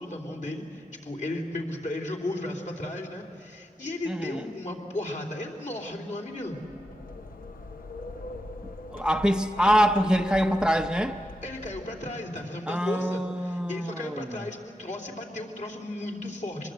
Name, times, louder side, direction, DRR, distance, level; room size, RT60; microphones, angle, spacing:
voice 1, 0.0-6.6 11.4-16.7, left 1 dB, 55° left, 0 dB, 3.1 m, -35 dB
voice 2, 4.1-4.4 8.6-11.2 12.7-14.4, equal, 5° right, 6 dB, 0.7 m, -25 dB
sound 1, 6.4-12.4, left 2 dB, 75° left, 1.0 m, -42 dB
24.5 x 21.0 x 7.8 m, 2.7 s
wide cardioid pair, 60°, 15 cm